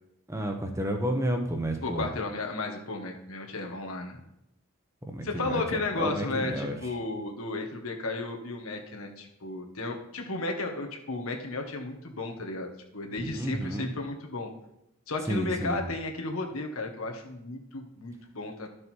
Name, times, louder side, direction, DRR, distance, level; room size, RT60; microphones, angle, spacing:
voice 1, 0.3-2.0 5.1-5.6 6.0-6.7 13.3-13.9 15.3-15.8, right 1 dB, 15° right, 4 dB, 1.0 m, -31 dB
voice 2, 1.8-4.2 5.2-14.5 15.1-18.7, left 2 dB, 85° left, 2 dB, 1.6 m, -34 dB
12.0 x 6.6 x 4.5 m, 0.82 s
head